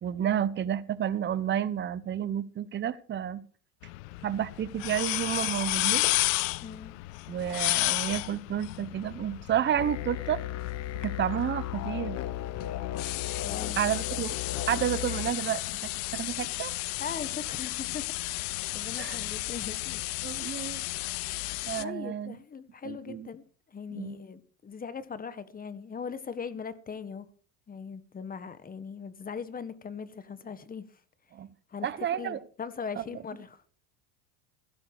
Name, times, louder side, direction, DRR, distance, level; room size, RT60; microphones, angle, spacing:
voice 1, 0.0-3.4 4.2-6.0 7.3-10.4 10.9-12.2 13.8-14.4 14.7-16.7 19.0-19.2 20.2-20.8 21.6-22.4 22.8-23.3 23.9-24.2 31.3-31.5 31.8-32.4, right 10 dB, 25° right, 1.1 m, -30 dB
sound 1, 3.8-21.8, left 22 dB, 70° left, 0.8 m, -33 dB
voice 2, 6.6-6.9 13.4-13.8 17.0-20.0 20.5-20.7 21.8-27.3 27.7-31.0 31.7-33.6, left 6 dB, 20° left, 1.5 m, -40 dB
sound 2, 9.8-15.3, left 13 dB, 40° left, 1.1 m, -35 dB
16.0 x 12.0 x 4.8 m
supercardioid pair, 110°, 40 cm